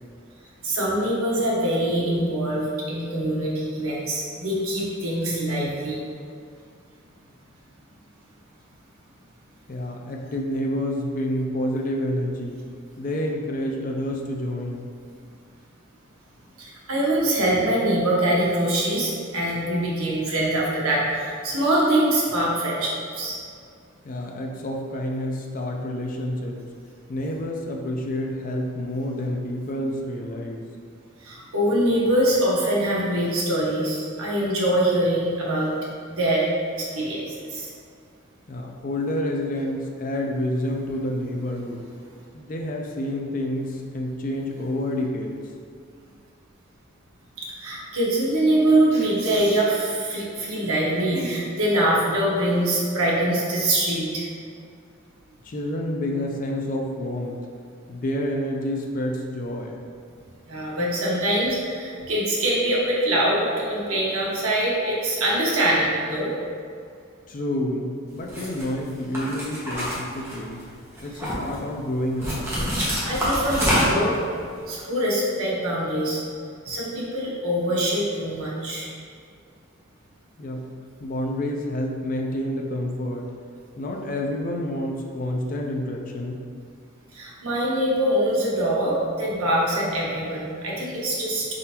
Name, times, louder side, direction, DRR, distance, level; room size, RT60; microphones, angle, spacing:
voice 1, 0.6-6.0 16.6-23.4 31.2-35.7 36.1-36.5 36.8-37.7 47.4-54.3 60.5-66.3 71.1-71.3 72.6-74.1 74.7-76.2 76.6-78.9 87.1-91.5, right 1 dB, 85° right, -5 dB, 1.0 m, -24 dB
voice 2, 9.7-12.6 13.0-14.9 24.0-26.6 27.1-30.6 38.5-41.8 42.3-45.3 55.4-57.4 57.9-59.7 67.3-70.6 71.0-72.4 80.4-80.7 81.0-83.3 83.8-86.4, left 1 dB, 40° left, 1 dB, 0.4 m, -28 dB
sound 1, 68.3-68.6 69.1-70.6 71.0-71.6 72.2-74.1, equal, 10° right, 0.8 m, -25 dB
4.1 x 3.7 x 2.8 m, 2.3 s
head